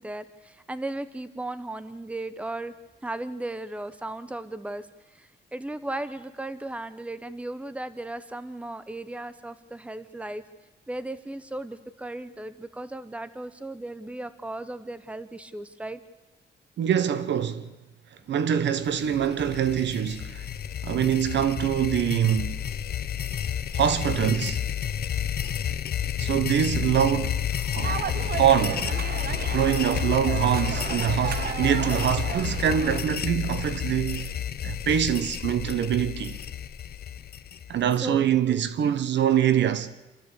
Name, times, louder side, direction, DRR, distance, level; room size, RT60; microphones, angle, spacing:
voice 1, 0.0-2.7 3.0-4.9 5.1-10.4 10.9-16.0 38.0-38.6, right 2 dB, 5° right, 1.0 m, -36 dB
voice 2, 16.8-17.7 18.3-20.5 20.8-22.6 23.7-24.6 26.2-28.0 28.3-28.9 29.5-34.3 34.6-36.4 37.7-39.9, right 9 dB, 80° right, 1.2 m, -24 dB
sound 1, 18.9-37.9, left 9 dB, 60° left, 0.8 m, -31 dB
sound 2, 27.8-33.0, right 8 dB, 60° right, 0.9 m, -33 dB
27.5 x 13.5 x 8.4 m
wide cardioid pair, 145°, 18 cm